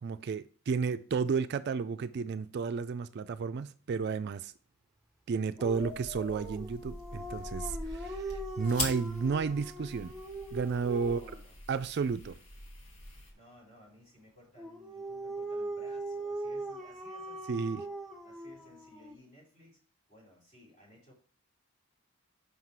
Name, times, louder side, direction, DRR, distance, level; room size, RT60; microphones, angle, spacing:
voice 1, 0.0-4.5 5.3-10.1 10.5-11.2 11.7-12.4 17.5-17.8, right 5 dB, 50° right, 0.3 m, -32 dB
sound 1, 5.6-13.3, left 2 dB, 80° left, 1.9 m, -43 dB
Dog, 5.6-11.4 14.6-19.1, right 2 dB, ahead, 0.8 m, -41 dB
voice 2, 11.0-11.6 13.3-17.8 18.2-19.8 20.1-21.1, equal, 35° left, 3.4 m, -58 dB
5.7 x 5.7 x 4.6 m
head